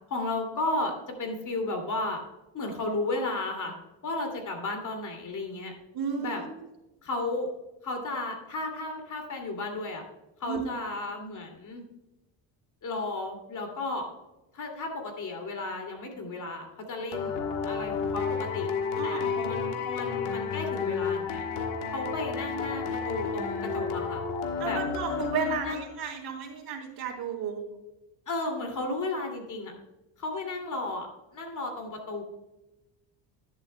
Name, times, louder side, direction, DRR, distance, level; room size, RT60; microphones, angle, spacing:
voice 1, 0.1-0.9 1.2-2.2 2.5-3.7 4.0-5.7 6.2-6.4 7.0-7.5 7.8-10.0 10.4-11.8 12.8-14.1 14.5-18.7 19.0-21.5 21.9-24.2 24.6-24.8 25.6-25.9 28.3-29.7 30.2-32.2, left 2 dB, 40° left, 4 dB, 2.6 m, -33 dB
voice 2, 5.9-6.7 10.4-10.7 19.0-19.5 24.6-27.6, right 5 dB, 50° right, -2 dB, 3.1 m, -33 dB
sound 1, 17.1-26.0, left 5 dB, 85° left, 1.6 m, -31 dB
11.0 x 10.5 x 2.2 m, 0.99 s
cardioid pair, 115°, 48 cm